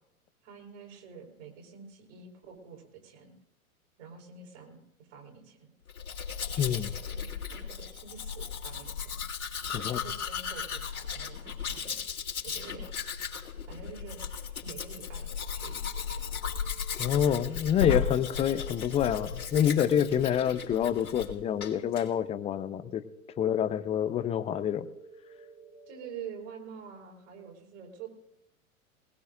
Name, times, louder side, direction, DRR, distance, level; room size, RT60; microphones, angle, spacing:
voice 1, 0.4-3.3 4.0-5.7 6.4-9.2 9.7-12.1 12.4-12.9 13.7-14.2 14.6-16.2 19.7-20.3 25.9-28.1, right 6 dB, 55° right, 1 dB, 4.9 m, -47 dB
Domestic sounds home sounds, 5.9-21.3 21.6-22.1, left 7 dB, 80° left, 3.5 m, -36 dB
voice 2, 6.6-6.9 9.7-10.0 17.0-23.0 23.4-24.9, left 9 dB, 15° left, 13 dB, 0.6 m, -27 dB
sound 1, 15.1-26.3, right 4 dB, 80° right, 4.1 m, -55 dB
20.5 x 20.0 x 2.6 m, 0.86 s
figure-of-eight pair, 105°, 43 cm